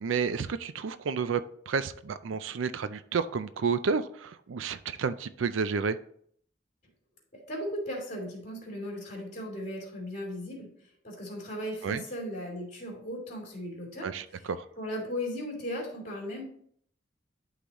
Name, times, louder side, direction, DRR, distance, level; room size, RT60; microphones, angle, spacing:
voice 1, 0.0-6.0 11.8-12.0 14.0-14.7, right 5 dB, 80° right, 13 dB, 0.4 m, -31 dB
voice 2, 7.5-10.7 11.0-14.1 14.8-16.5, equal, 40° left, -1 dB, 2.7 m, -36 dB
11.5 x 3.9 x 3.0 m, 0.62 s
head